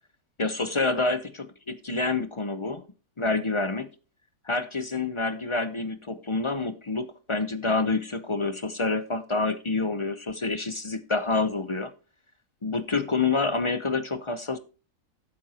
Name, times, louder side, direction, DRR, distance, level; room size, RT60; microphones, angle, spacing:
voice 1, 0.4-2.8 3.2-3.9 4.5-11.9 12.6-14.6, left 3 dB, 40° left, 0.4 m, -27 dB
11.5 x 9.1 x 2.9 m
omnidirectional pair, 1.7 m